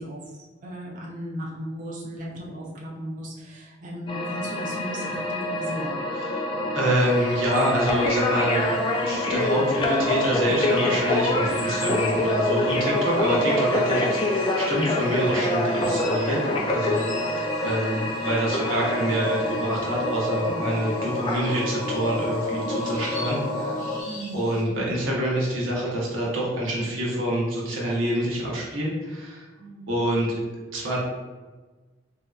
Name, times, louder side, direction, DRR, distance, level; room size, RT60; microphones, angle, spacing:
voice 1, 0.0-6.0 24.0-24.9 29.6-30.0, equal, 40° right, -3 dB, 0.5 m, -36 dB
Dark Space Atmosphere, 4.1-24.0, left 1 dB, 25° left, 0.4 m, -26 dB
voice 2, 6.7-8.8 9.1-16.4 16.7-17.0 17.6-23.8 24.3-29.5 29.9-30.4 30.7-31.0, right 1 dB, 90° right, -4 dB, 1.0 m, -26 dB
sound 1, 6.9-24.6, left 2 dB, 40° left, 1.1 m, -46 dB
Engine, 10.7-18.4, left 2 dB, 75° left, 0.7 m, -43 dB
3.3 x 2.7 x 2.4 m, 1.3 s
head